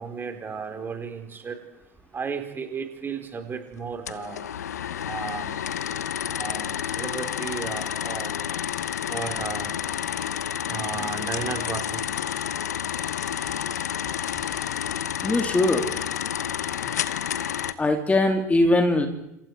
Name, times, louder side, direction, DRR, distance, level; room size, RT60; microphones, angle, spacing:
voice 1, 0.0-1.6 2.1-4.4 5.0-5.6 6.4-8.4 9.1-9.7 10.7-12.0 16.9-17.0, right 5 dB, 25° right, 5 dB, 4.6 m, -34 dB
sound 1, 4.1-17.7, left 9 dB, 75° left, 1.2 m, -30 dB
voice 2, 15.2-15.8 17.8-19.1, left 2 dB, 15° left, 5 dB, 3.1 m, -21 dB
30.0 x 27.5 x 4.9 m, 0.82 s
hypercardioid pair, 80°, 9 cm